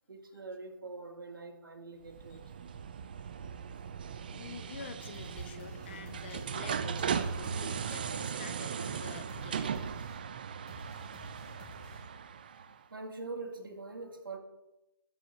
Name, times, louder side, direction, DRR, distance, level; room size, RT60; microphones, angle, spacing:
voice 1, 0.1-2.7 3.4-3.5 12.5-14.4, right 3 dB, 65° right, 3 dB, 2.2 m, -44 dB
sound 1, 2.1-12.8, right 7 dB, 25° right, 0.3 m, -38 dB
voice 2, 4.3-9.8, left 6 dB, 30° left, 8 dB, 0.8 m, -47 dB
sound 2, 5.1-12.3, left 1 dB, 10° left, 1.5 m, -52 dB
13.0 x 4.9 x 6.7 m, 0.95 s
hypercardioid pair, 160°, 12 cm